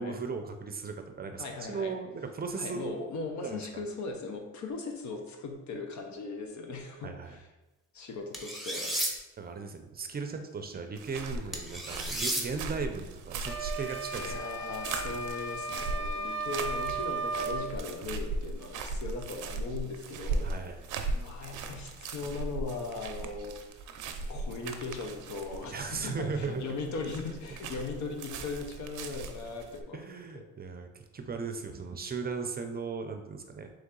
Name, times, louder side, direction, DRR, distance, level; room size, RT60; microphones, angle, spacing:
voice 1, 0.0-2.9 3.4-3.6 7.0-7.4 9.4-14.4 20.4-20.8 25.7-26.6 29.9-33.7, right 4 dB, 30° right, 6 dB, 0.5 m, -37 dB
voice 2, 1.4-1.9 2.6-7.5 7.9-9.0 14.2-20.5 21.1-23.6 24.3-30.0 30.3-30.4, left 3 dB, 70° left, 3 dB, 0.8 m, -38 dB
sound 1, 8.3-9.1 11.5-12.4, right 1 dB, ahead, 0.8 m, -32 dB
sound 2, 11.0-29.8, right 3 dB, 85° right, 0.5 m, -38 dB
sound 3, 13.4-17.7, right 3 dB, 40° left, 1.1 m, -35 dB
3.8 x 3.3 x 3.7 m, 1.0 s
cardioid pair, 90°, 30 cm